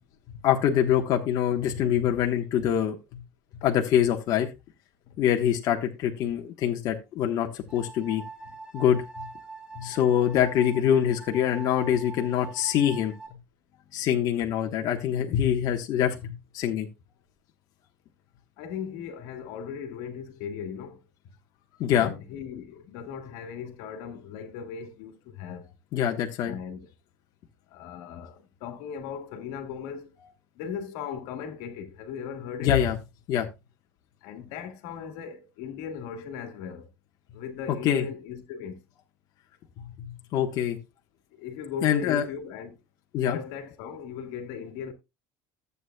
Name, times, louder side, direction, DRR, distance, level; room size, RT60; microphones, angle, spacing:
voice 1, 0.4-3.0 3.6-4.5 5.2-8.2 8.7-9.2 9.8-13.1 13.9-16.9 21.8-22.1 25.9-26.5 32.6-33.0 33.3-33.5 37.8-38.0 39.8-40.8 41.8-42.2 43.1-43.4, left 9 dB, 50° left, 1.2 m, -25 dB
sound 1, 7.7-13.3, right 3 dB, 10° right, 1.9 m, -43 dB
voice 2, 18.6-21.0 22.0-25.7 26.4-26.9 27.7-30.1 30.5-32.7 34.2-36.9 37.3-38.8 41.4-42.8 43.3-44.9, left 7 dB, 85° left, 1.7 m, -38 dB
14.0 x 8.2 x 2.3 m
cardioid pair, 145°, 8 cm